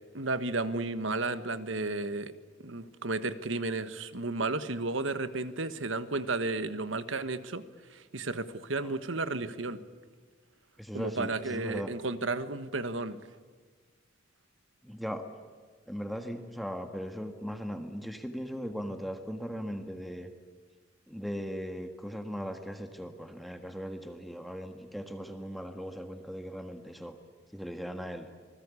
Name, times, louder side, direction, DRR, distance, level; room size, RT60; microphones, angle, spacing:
voice 1, 0.1-2.3 2.6-7.6 7.9-9.8 10.9-13.2, right 3 dB, 75° right, 12 dB, 1.4 m, -33 dB
voice 2, 10.8-11.9 14.8-15.2 15.9-20.3 21.1-27.2 27.5-28.3, equal, ahead, 6 dB, 1.6 m, -38 dB
27.5 x 20.0 x 8.4 m, 1.5 s
head